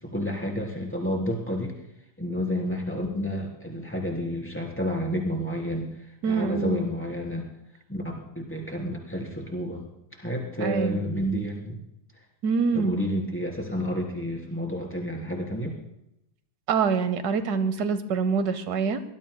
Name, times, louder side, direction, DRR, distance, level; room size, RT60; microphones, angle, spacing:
voice 1, 0.0-1.7 2.2-5.9 6.2-7.5 7.9-8.0 8.4-9.9 10.1-11.8 12.7-15.8, equal, 5° left, -1 dB, 3.4 m, -30 dB
voice 2, 6.2-6.8 10.6-11.0 12.4-13.0 16.7-19.0, right 5 dB, 80° right, 11 dB, 1.4 m, -25 dB
23.5 x 19.5 x 2.2 m, 0.82 s
omnidirectional pair, 1.7 m